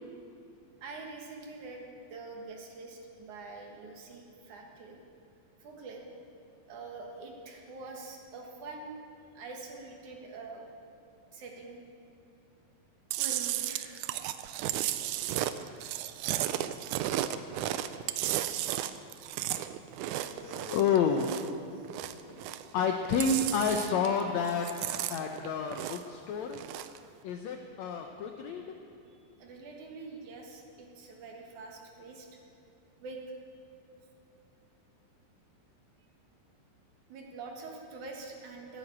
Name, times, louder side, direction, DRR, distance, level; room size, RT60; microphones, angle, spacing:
voice 1, 0.8-5.0 5.6-6.0 6.7-8.9 9.3-10.6 11.3-11.8 13.2-14.0 20.3-20.4 29.1-32.3 33.0-33.2 37.1-38.8, right 3 dB, 60° right, 1 dB, 2.8 m, -45 dB
Chewing mastication, 13.1-21.6 21.8-22.8 23.0-24.2 24.5-26.2 26.5-27.0, right 13 dB, 90° right, 1.7 m, -34 dB
voice 2, 20.3-21.7 22.4-24.7 25.1-26.6 27.2-28.6, left 5 dB, 85° left, 4 dB, 1.6 m, -30 dB
14.5 x 9.9 x 8.5 m, 2.8 s
omnidirectional pair, 4.1 m